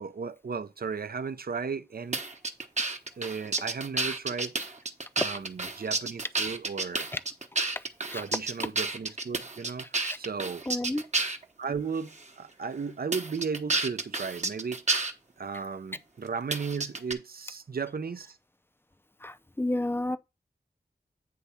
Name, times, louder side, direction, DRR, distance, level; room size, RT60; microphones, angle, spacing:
voice 1, 0.0-2.2 3.2-4.7 5.2-7.1 8.1-9.9 10.2-10.6 11.6-14.8 15.4-18.4, right 5 dB, 60° right, 0.6 m, -35 dB
sound 1, 2.1-11.4 12.1-12.3 13.1-15.1 16.5-17.1, right 3 dB, 45° right, 1.0 m, -30 dB
voice 2, 10.7-11.0 19.2-20.2, left 1 dB, 15° left, 0.6 m, -30 dB
9.4 x 3.3 x 5.6 m
wide cardioid pair, 80°, 17 cm